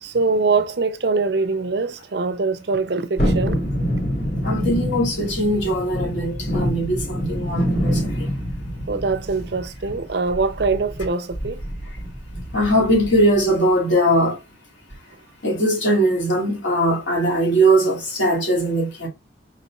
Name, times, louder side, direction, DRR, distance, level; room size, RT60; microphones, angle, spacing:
voice 1, 0.0-3.6 8.9-11.6, right 4 dB, 60° right, 0.6 m, -23 dB
Thunderstorm, 3.2-13.4 13.7-13.8, equal, 55° left, 1.9 m, -26 dB
voice 2, 4.4-8.3 12.5-14.4 15.4-19.1, right 1 dB, 75° left, 2.3 m, -20 dB
4.9 x 4.1 x 2.3 m
head